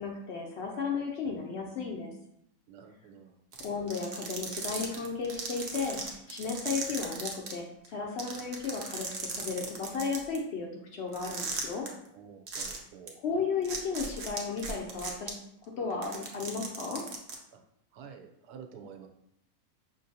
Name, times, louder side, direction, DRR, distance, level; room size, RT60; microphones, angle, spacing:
voice 1, 0.0-2.1 3.6-11.9 13.2-15.3 15.6-17.0, left 5 dB, 70° left, 1 dB, 0.6 m, -34 dB
voice 2, 2.7-3.4 12.1-13.2 17.5-17.6 17.9-19.1, right 7 dB, 85° right, 5 dB, 1.1 m, -49 dB
sound 1, 3.5-7.5 7.8-7.9 8.2-10.4 11.1-11.9 12.5-12.8 13.1-13.2 13.6-15.3 15.9-17.3, right 5 dB, 55° right, 0.7 m, -37 dB
5.7 x 2.6 x 2.7 m, 0.76 s
omnidirectional pair, 1.6 m